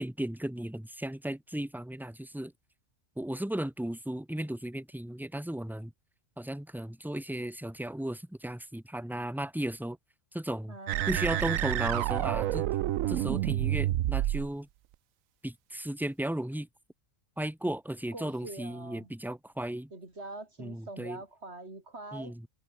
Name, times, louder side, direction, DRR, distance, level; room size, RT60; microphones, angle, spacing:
voice 1, 0.0-2.5 3.2-5.9 6.4-10.0 10.3-10.8 11.1-12.7 13.1-14.7 15.4-16.7 17.4-19.9 20.6-21.2 22.1-22.5, right 1 dB, ahead, 1.1 m, -35 dB
voice 2, 10.7-11.8 18.1-19.1 19.9-22.4, right 2 dB, 50° right, 5.0 m, -44 dB
sound 1, 10.9-14.5, right 14 dB, 75° right, 1.0 m, -29 dB
omnidirectional pair, 1.4 m